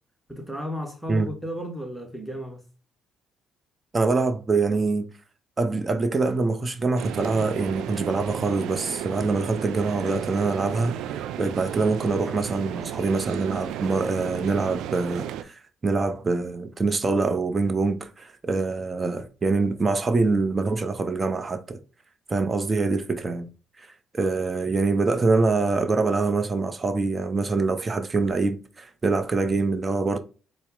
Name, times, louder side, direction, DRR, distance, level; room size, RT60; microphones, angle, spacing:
voice 1, 0.3-2.7, equal, ahead, 1.1 m, -34 dB
voice 2, 3.9-5.1 5.6-11.0 11.4-21.8 22.3-23.5 24.1-30.2, right 3 dB, 30° right, 0.6 m, -24 dB
sound 1, 7.0-15.4, right 11 dB, 75° right, 0.3 m, -33 dB
4.1 x 2.0 x 3.7 m
supercardioid pair, 60°, 0 cm